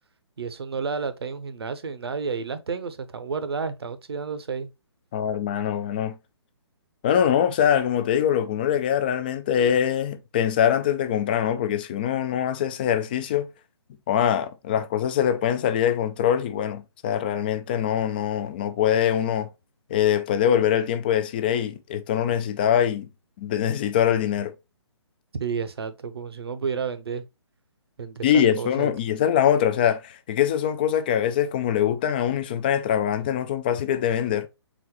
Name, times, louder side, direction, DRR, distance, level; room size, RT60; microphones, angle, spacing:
voice 1, 0.4-4.7 25.4-27.2 28.0-28.9, right 5 dB, 60° right, 0.7 m, -31 dB
voice 2, 5.1-6.2 7.0-13.5 14.1-19.5 19.9-23.1 23.4-24.5 28.2-34.5, left 9 dB, 20° left, 0.3 m, -23 dB
4.1 x 3.8 x 3.0 m
figure-of-eight pair, 135°, 15 cm